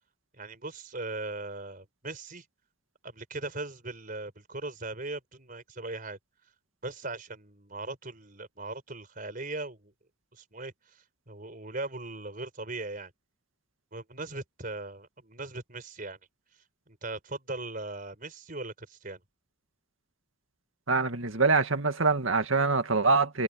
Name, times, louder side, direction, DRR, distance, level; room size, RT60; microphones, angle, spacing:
voice 1, 0.3-2.4 3.0-6.2 6.8-9.9 10.3-13.1 13.9-16.2 16.9-19.2, right 2 dB, 40° right, 4.6 m, -39 dB
voice 2, 20.9-23.4, right 4 dB, 70° right, 2.1 m, -24 dB
head